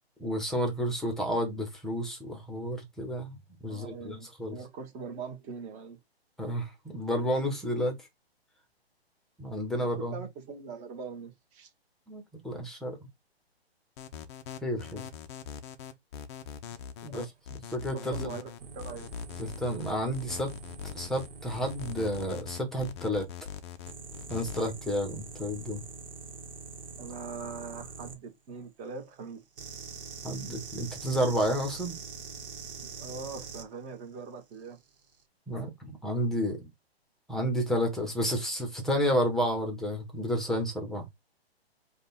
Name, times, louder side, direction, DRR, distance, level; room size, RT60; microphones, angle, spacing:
voice 1, 0.2-3.4 3.6-4.6 6.4-8.0 9.4-10.1 12.1-13.0 14.6-15.0 17.0-17.2 17.7-18.3 19.4-20.5 20.9-23.3 24.3-25.8 30.2-32.0 35.5-36.7 37.3-41.1, equal, ahead, 1.0 m, -31 dB
voice 2, 3.7-6.0 9.8-11.7 17.1-17.3 17.9-19.1 27.0-29.4 32.8-34.8, right 5 dB, 20° right, 1.2 m, -42 dB
sound 1, 14.0-24.6, left 8 dB, 25° left, 0.6 m, -42 dB
sound 2, 18.6-22.3 23.9-28.2 29.6-33.7 34.9-35.1, right 4 dB, 60° right, 1.4 m, -44 dB
5.2 x 2.4 x 4.1 m
hypercardioid pair, 135°, 32 cm